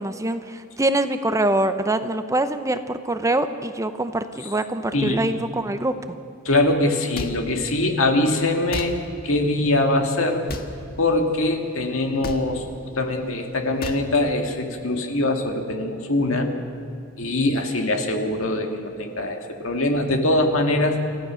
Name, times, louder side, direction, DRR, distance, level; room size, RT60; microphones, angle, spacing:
voice 1, 0.0-6.2, right 1 dB, 15° right, 10 dB, 0.7 m, -24 dB
voice 2, 6.4-9.0 9.2-10.4 11.0-16.5 17.2-21.0, left 2 dB, 70° left, 3 dB, 2.2 m, -22 dB
sound 1, 7.1-7.3 8.7-8.9 10.5-10.7 12.2-12.4 13.8-14.0, left 2 dB, 50° left, 1.5 m, -31 dB
28.5 x 14.5 x 6.3 m, 2.5 s
head